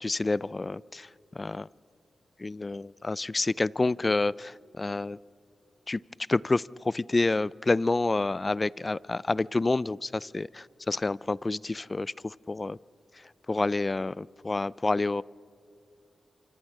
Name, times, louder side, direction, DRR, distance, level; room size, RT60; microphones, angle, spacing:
voice 1, 0.0-1.1 1.4-1.7 2.4-5.2 5.9-6.0 6.3-12.8 13.5-15.2, left 2 dB, 35° left, 23 dB, 0.4 m, -28 dB
27.5 x 25.5 x 3.7 m, 2.7 s
supercardioid pair, 45°, 0 cm